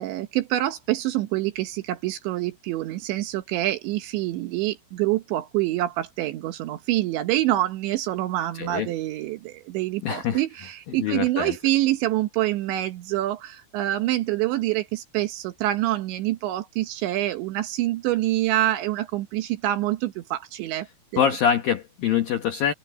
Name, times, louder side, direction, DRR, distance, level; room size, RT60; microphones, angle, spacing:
voice 1, 0.0-20.9 21.1-21.3, right 15 dB, 75° right, 3.0 m, -26 dB
voice 2, 8.5-8.9 10.0-10.4 11.0-11.6 21.2-22.7, left 8 dB, 75° left, 2.1 m, -24 dB
omnidirectional pair, 6.0 m